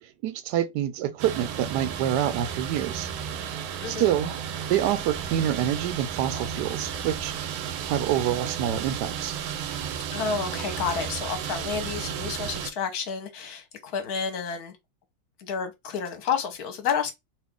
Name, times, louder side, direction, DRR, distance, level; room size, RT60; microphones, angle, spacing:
voice 1, 0.0-3.1 3.8-4.3 4.7-7.5 7.9-9.3, right 11 dB, 75° right, 1.0 m, -27 dB
sound 1, 1.2-12.7, right 8 dB, 90° right, 1.4 m, -33 dB
voice 2, 3.8-4.1 10.1-14.7 15.4-17.1, left 6 dB, 60° left, 1.2 m, -30 dB
3.0 x 2.5 x 3.5 m
omnidirectional pair, 2.2 m